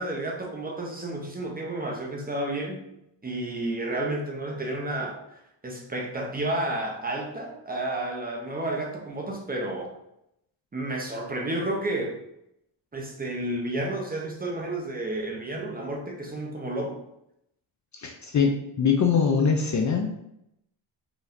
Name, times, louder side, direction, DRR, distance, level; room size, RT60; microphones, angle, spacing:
voice 1, 0.0-2.9 3.2-5.2 5.6-9.9 10.7-12.2 12.9-17.0, right 1 dB, 20° right, 0 dB, 0.7 m, -31 dB
voice 2, 17.9-20.1, left 6 dB, 40° left, 3 dB, 0.5 m, -23 dB
4.9 x 3.1 x 2.5 m, 0.80 s
cardioid pair, 115°, 49 cm